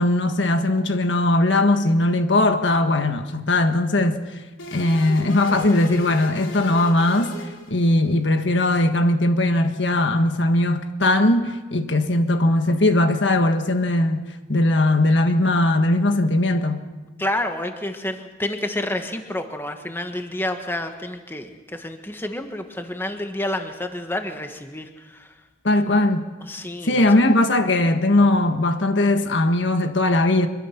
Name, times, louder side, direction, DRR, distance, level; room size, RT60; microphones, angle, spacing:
voice 1, 0.0-4.2 4.7-7.3 7.7-16.9 25.6-26.2 26.8-30.5, left 1 dB, 70° left, 7 dB, 1.5 m, -19 dB
sound 1, 4.6-8.2, equal, 90° left, 4.1 m, -38 dB
voice 2, 17.2-25.3 26.4-27.0, left 1 dB, 10° left, 6 dB, 1.4 m, -29 dB
24.5 x 22.5 x 5.9 m, 1.2 s
head